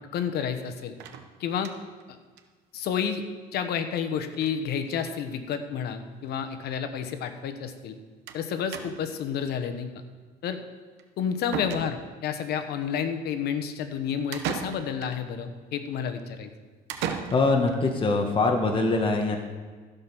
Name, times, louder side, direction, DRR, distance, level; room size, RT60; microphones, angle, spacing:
voice 1, 0.1-0.9 1.4-1.7 2.7-3.2 3.5-7.9 8.3-9.9 10.4-10.6 11.2-16.5, left 7 dB, 75° left, 8 dB, 1.2 m, -30 dB
sound 1, 1.0-2.0 2.4-2.5 2.7-2.8 3.1-3.2 4.3-4.6 4.8-5.2 6.1-6.2 6.4-6.5 8.3-8.4 8.7-9.2 11.0-11.1 11.5-12.3 14.3-15.2 16.9-17.8, right 8 dB, 90° right, 1.0 m, -36 dB
voice 2, 17.0-19.4, left 3 dB, 30° left, 2 dB, 1.4 m, -24 dB
15.5 x 5.3 x 6.1 m, 1.5 s
cardioid pair, 110°, 17 cm